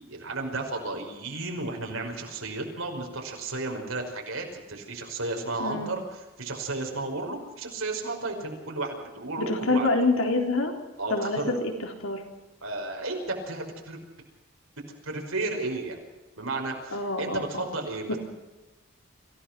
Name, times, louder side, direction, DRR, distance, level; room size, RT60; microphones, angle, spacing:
voice 1, 0.0-9.9 11.0-11.6 12.6-14.0 15.0-16.0 16.4-18.2, right 2 dB, 80° right, 2 dB, 5.4 m, -33 dB
voice 2, 5.6-5.9 9.4-10.7 11.1-11.7 12.0-12.2 16.9-17.7, left 2 dB, 75° left, 2 dB, 3.9 m, -26 dB
26.0 x 16.5 x 6.1 m, 1.1 s
head